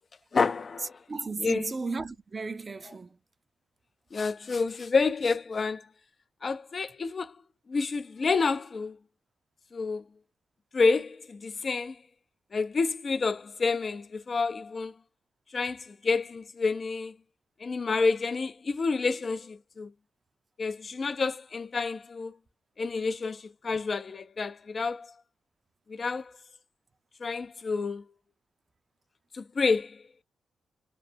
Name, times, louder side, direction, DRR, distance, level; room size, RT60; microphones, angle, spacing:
voice 1, 0.3-1.0 1.4-1.7 4.1-5.9 6.4-7.4 7.7-9.0 9.7-10.0 10.7-12.0 12.5-14.9 15.5-17.1 17.6-19.9 20.6-22.3 22.8-25.1 25.9-26.3 27.2-28.0 29.3-30.0, left 4 dB, 50° left, 0.3 m, -29 dB
voice 2, 1.1-3.2, right 3 dB, 40° right, 0.5 m, -35 dB
3.0 x 2.0 x 2.6 m
cardioid pair, 60°, 0 cm